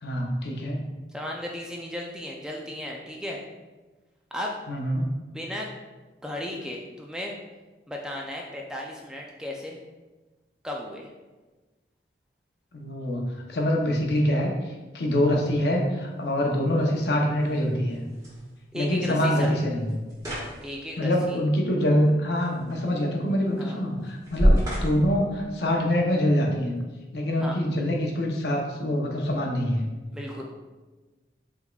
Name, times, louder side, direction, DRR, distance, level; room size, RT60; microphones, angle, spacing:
voice 1, 0.0-0.8 4.7-5.1 12.7-18.0 18.7-19.9 21.0-26.8 27.1-29.8, equal, 70° left, 0 dB, 0.7 m, -25 dB
voice 2, 1.1-3.4 4.3-4.6 5.3-5.7 6.2-7.4 7.9-9.8 10.6-11.1 18.7-19.5 20.6-21.4 23.6-23.8 27.4-27.6 30.1-30.4, left 1 dB, 5° right, -1 dB, 0.3 m, -35 dB
sound 1, 15.3-26.2, equal, 20° right, 1.4 m, -31 dB
5.0 x 3.4 x 2.3 m, 1.2 s
head